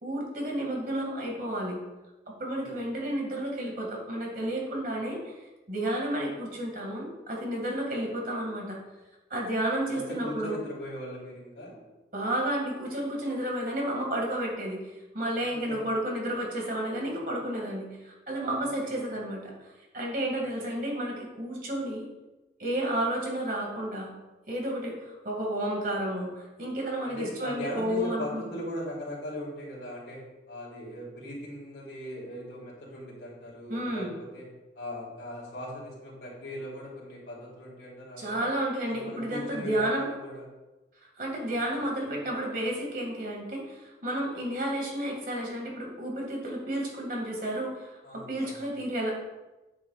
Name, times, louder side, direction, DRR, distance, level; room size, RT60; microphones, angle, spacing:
voice 1, 0.0-1.8 2.3-5.4 5.7-8.8 9.3-10.6 12.1-14.9 15.1-22.1 22.6-24.1 24.5-28.4 33.7-34.2 38.2-40.1 41.2-49.1, right 1 dB, 50° right, -1 dB, 2.1 m, -31 dB
voice 2, 9.9-11.8 15.4-15.9 18.6-18.9 20.6-20.7 27.0-34.5 34.7-38.5 38.8-40.5 48.0-48.6, equal, 85° left, -5 dB, 2.9 m, -39 dB
9.1 x 8.2 x 2.4 m, 1.1 s
head